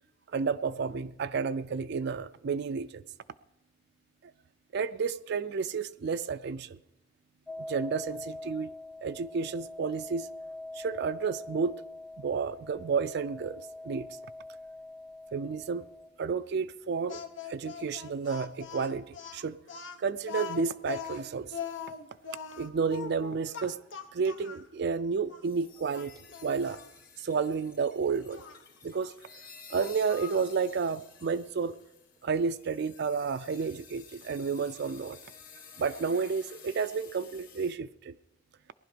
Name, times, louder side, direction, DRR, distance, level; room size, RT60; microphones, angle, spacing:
voice 1, 0.3-3.0 4.7-6.8 7.7-8.7 9.0-10.3 10.7-11.8 12.2-14.1 15.3-15.9 16.2-17.2 17.5-19.6 20.0-21.5 22.6-23.8 24.1-26.8 27.2-28.4 28.8-29.1 29.7-31.8 32.2-35.2 35.8-38.1, right 5 dB, 60° right, 11 dB, 0.4 m, -31 dB
sound 1, 7.5-16.1, left 2 dB, 5° right, 0.6 m, -44 dB
Speech, 17.1-24.7 25.3-25.4 25.9-26.9 28.3-28.6 29.7-30.5, left 7 dB, 70° left, 1.1 m, -41 dB
sound 2, 25.4-37.7, left 6 dB, 50° left, 2.5 m, -53 dB
19.0 x 11.5 x 5.1 m, 0.90 s
head